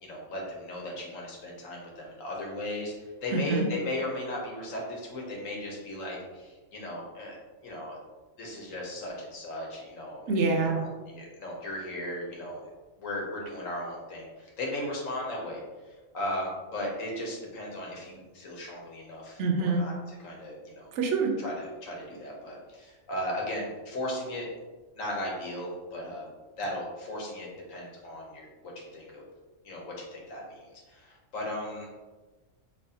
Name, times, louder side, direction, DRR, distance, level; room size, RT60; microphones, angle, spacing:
voice 1, 0.0-7.4 7.6-8.0 8.4-10.3 10.7-12.7 13.0-15.6 16.1-19.9 20.2-20.9 21.4-24.5 25.0-26.2 26.6-29.2 29.6-31.9, left 1 dB, 80° left, -2 dB, 1.3 m, -36 dB
voice 2, 3.3-3.6 10.3-10.8 19.4-19.8 20.9-21.4, right 3 dB, 70° right, 2 dB, 0.9 m, -26 dB
4.1 x 3.1 x 2.7 m, 1.2 s
omnidirectional pair, 1.3 m